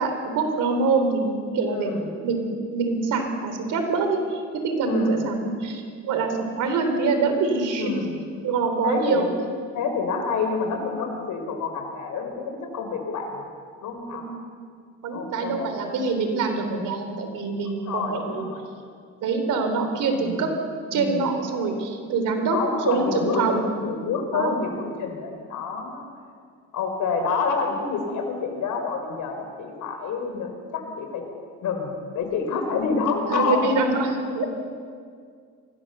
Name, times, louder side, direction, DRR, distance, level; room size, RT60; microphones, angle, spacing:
voice 1, 0.0-1.9 2.2-8.0 8.4-9.3 14.1-14.3 15.0-18.5 19.2-20.5 20.9-22.6 22.9-23.7 24.3-24.5 33.3-34.5, right 4 dB, 85° right, 5 dB, 3.7 m, -25 dB
voice 2, 1.7-2.1 4.8-5.2 7.8-8.1 8.8-9.3 9.7-13.5 13.8-14.2 15.1-15.8 17.6-18.6 20.1-20.5 20.9-21.3 22.5-23.4 23.8-26.1 26.7-31.2 31.6-33.7 34.2-34.5, left 5 dB, 80° left, 4 dB, 4.5 m, -28 dB
24.5 x 17.5 x 6.8 m, 2.1 s
cardioid pair, 90°, 30 cm